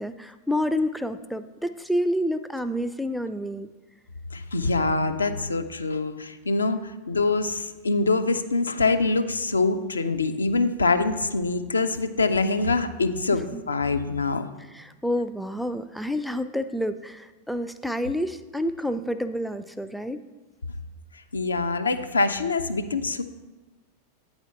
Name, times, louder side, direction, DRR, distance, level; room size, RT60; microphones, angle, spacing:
voice 1, 0.0-3.7 13.3-13.6 14.7-20.2, equal, ahead, 10 dB, 0.3 m, -29 dB
voice 2, 4.3-14.4 21.3-23.2, left 3 dB, 75° left, 8 dB, 0.5 m, -24 dB
8.7 x 4.3 x 5.6 m, 1.2 s
figure-of-eight pair, 90°, 0 cm